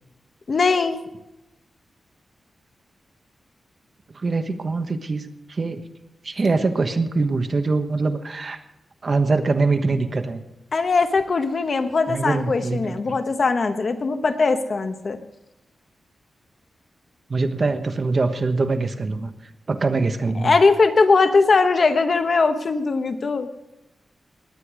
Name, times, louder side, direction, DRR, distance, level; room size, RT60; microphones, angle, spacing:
voice 1, 0.5-1.0 10.7-15.2 20.4-23.5, left 4 dB, 45° left, 8 dB, 1.1 m, -20 dB
voice 2, 4.1-5.8 6.2-8.6 9.0-10.4 12.1-13.2 17.3-19.3 19.7-20.6, right 3 dB, 40° right, 7 dB, 1.2 m, -23 dB
19.0 x 10.0 x 4.9 m, 0.96 s
wide cardioid pair, 150°, 0 cm